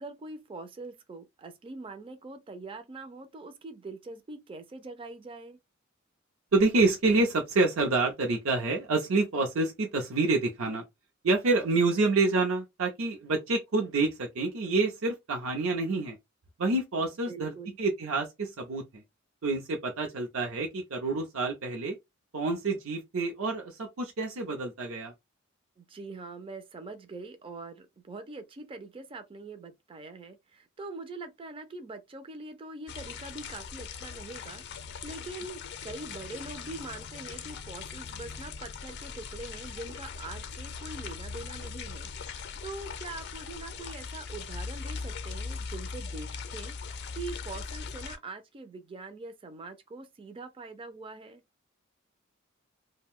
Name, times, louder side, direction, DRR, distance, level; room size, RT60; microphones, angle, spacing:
voice 1, 0.0-5.6 17.3-17.8 25.8-51.4, right 3 dB, 25° right, 0.4 m, -43 dB
voice 2, 6.5-10.8 11.2-16.2 16.6-19.0 19.4-22.0 22.3-25.1, right 3 dB, 75° right, 0.6 m, -27 dB
sound 1, 32.9-48.2, left 5 dB, 55° left, 0.5 m, -40 dB
2.6 x 2.1 x 3.5 m
head